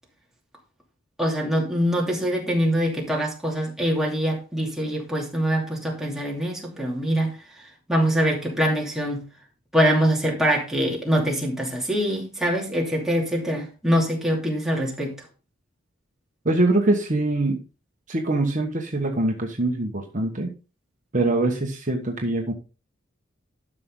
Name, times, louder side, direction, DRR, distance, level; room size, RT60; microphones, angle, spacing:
voice 1, 1.2-7.3 7.9-9.3 9.7-15.2, equal, ahead, 2.7 m, -24 dB
voice 2, 16.4-17.6 18.1-20.5 21.1-22.5, right 2 dB, 40° right, 1.3 m, -23 dB
12.0 x 6.1 x 3.8 m
head